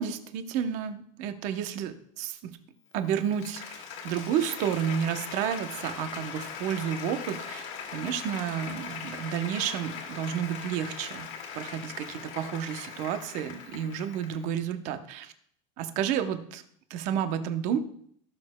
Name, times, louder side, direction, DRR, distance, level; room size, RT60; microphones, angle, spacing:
voice 1, 0.0-2.5 2.9-7.6 7.9-11.3 11.5-15.3 15.8-16.6 16.9-17.8, right 8 dB, 45° right, 9 dB, 0.8 m, -31 dB
Applause, 2.9-14.5, left 6 dB, 45° left, 1.7 m, -40 dB
17.5 x 6.4 x 2.2 m, 0.64 s
supercardioid pair, 160°, 17 cm